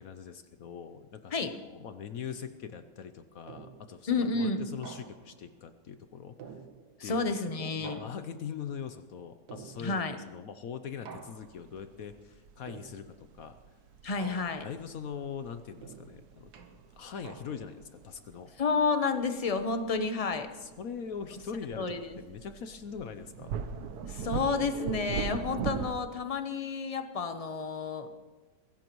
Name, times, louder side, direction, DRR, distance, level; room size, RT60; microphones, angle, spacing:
voice 1, 0.0-6.3 7.0-13.6 14.2-16.5 17.0-18.5 20.6-23.5, left 7 dB, 65° left, 9 dB, 1.0 m, -42 dB
sound 1, 3.5-4.0 4.8-5.5 6.4-7.2 7.8-8.6 9.5-10.2 11.1-11.8 12.7-13.3 14.2-14.9 15.8-17.9, right 6 dB, 85° right, 1.7 m, -49 dB
voice 2, 4.1-4.6 7.0-8.0 9.8-10.2 14.0-14.7 18.6-20.5 21.8-22.0 24.1-28.1, left 4 dB, 30° left, 8 dB, 0.7 m, -30 dB
sound 2, 11.4-25.9, right 6 dB, 70° right, 1.3 m, -41 dB
23.5 x 16.0 x 3.1 m, 1.3 s
omnidirectional pair, 1.8 m